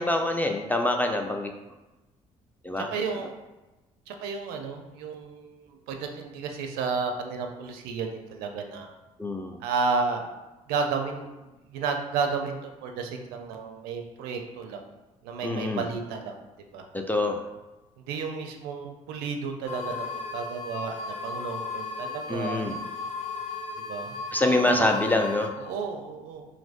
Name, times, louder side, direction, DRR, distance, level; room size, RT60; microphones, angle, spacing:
voice 1, 0.0-1.5 2.6-2.9 9.2-9.6 15.4-15.8 16.9-17.4 22.3-22.8 24.3-25.5, left 2 dB, 10° left, 3 dB, 0.3 m, -25 dB
voice 2, 2.8-3.3 4.1-8.9 9.6-10.3 10.7-14.9 15.2-16.4 16.7-16.8 18.1-20.0 20.3-22.7 23.8-24.1 24.5-24.9 25.6-26.5, right 5 dB, 65° right, 4 dB, 0.4 m, -32 dB
sound 1, 19.7-25.5, left 4 dB, 40° left, 0.6 m, -35 dB
3.0 x 2.5 x 2.4 m, 1.1 s
figure-of-eight pair, 50°, 18 cm